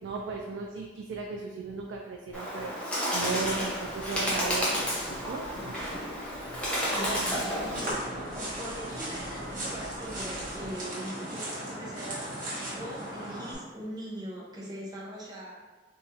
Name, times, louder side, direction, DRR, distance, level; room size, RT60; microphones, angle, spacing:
voice 1, 0.0-5.8 7.2-7.5, right 4 dB, 80° right, 0 dB, 0.4 m, -36 dB
Bird, 2.3-7.9, equal, 5° left, 0.9 m, -31 dB
sound 1, 3.4-10.7, equal, 50° left, 0.9 m, -46 dB
voice 2, 6.9-12.4 12.7-15.6, right 1 dB, 20° right, -5 dB, 0.8 m, -41 dB
sound 2, 7.5-13.5, right 1 dB, 45° right, 1.0 m, -37 dB
3.5 x 3.0 x 2.8 m, 1.3 s
head